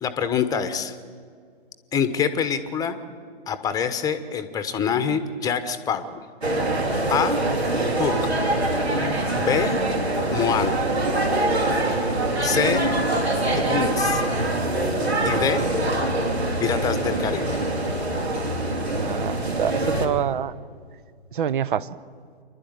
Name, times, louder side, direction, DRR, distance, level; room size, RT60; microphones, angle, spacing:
voice 1, 0.0-0.9 1.9-3.0 3.5-6.2 7.1-7.4 8.0-8.2 9.4-9.8 10.3-10.8 12.4-12.9 13.5-14.2 15.2-15.6 16.6-17.6, left 7 dB, 10° left, 10 dB, 1.1 m, -25 dB
sound 1, 6.4-20.1, right 1 dB, 75° right, 3.0 m, -24 dB
voice 2, 18.9-20.5 21.3-21.9, right 9 dB, 50° right, 16 dB, 0.9 m, -26 dB
27.0 x 11.5 x 9.1 m, 2.1 s
figure-of-eight pair, 125°, 32 cm